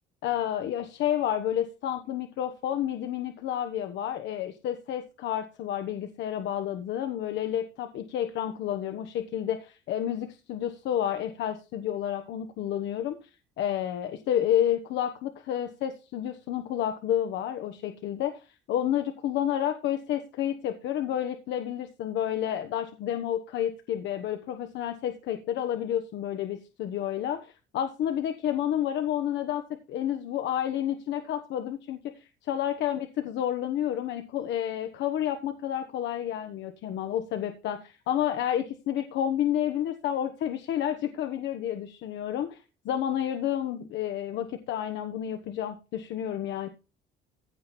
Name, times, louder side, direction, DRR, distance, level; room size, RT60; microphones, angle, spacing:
voice 1, 0.2-13.2 13.6-29.6 29.9-46.7, left 10 dB, 70° left, 8 dB, 1.3 m, -30 dB
15.5 x 5.3 x 4.3 m, 0.30 s
cardioid pair, 135°, 19 cm